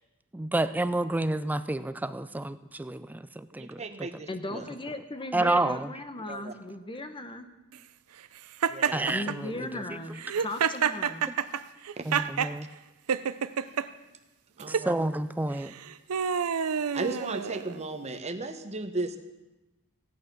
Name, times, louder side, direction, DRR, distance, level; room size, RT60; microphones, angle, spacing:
voice 1, 0.3-4.1 5.3-5.9 8.9-9.8 12.1-12.7 14.7-15.7, right 2 dB, 10° right, 13 dB, 0.3 m, -30 dB
voice 2, 3.6-4.3 4.5-4.7 6.3-6.5 8.7-9.1 12.0-12.1 14.6-14.9 16.9-19.2, right 3 dB, 30° right, 7 dB, 1.0 m, -35 dB
voice 3, 4.3-7.5 9.1-11.3, left 1 dB, 20° left, 8 dB, 0.9 m, -37 dB
Laughter, 8.6-9.4 10.2-12.5 13.1-13.9 14.6-14.9 15.6-17.8, right 7 dB, 80° right, 0.5 m, -28 dB
16.0 x 9.3 x 6.0 m, 1.0 s
head